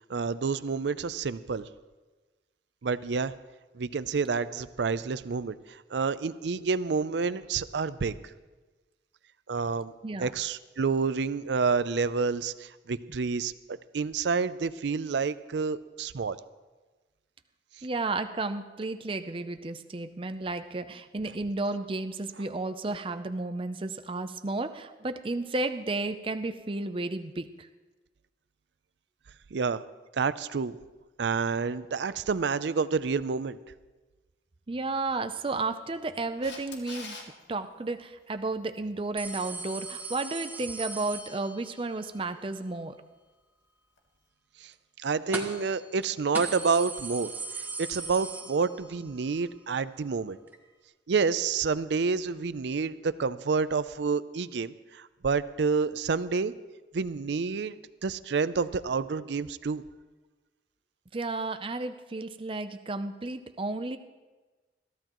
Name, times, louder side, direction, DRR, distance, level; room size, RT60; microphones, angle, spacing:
voice 1, 0.1-1.7 2.8-3.3 3.7-8.2 9.5-9.9 10.2-16.4 29.5-29.8 30.1-30.8 31.2-33.6 44.6-44.7 45.0-47.3 47.8-50.4 51.1-56.5 56.9-57.8 58.0-59.8, right 5 dB, 75° right, 15 dB, 0.5 m, -29 dB
voice 2, 17.8-27.7 34.7-37.2 37.5-42.9 61.1-64.0, right 3 dB, 30° right, 9 dB, 0.5 m, -33 dB
Camera, 36.4-37.3 44.0-44.1, left 4 dB, 85° left, 2.0 m, -42 dB
sound 1, 39.2-41.9 45.3-45.7 46.0-46.1 46.3-49.1 49.4-49.5 50.5-50.6, right 3 dB, 10° right, 1.3 m, -38 dB
22.0 x 14.5 x 3.0 m, 1.2 s
head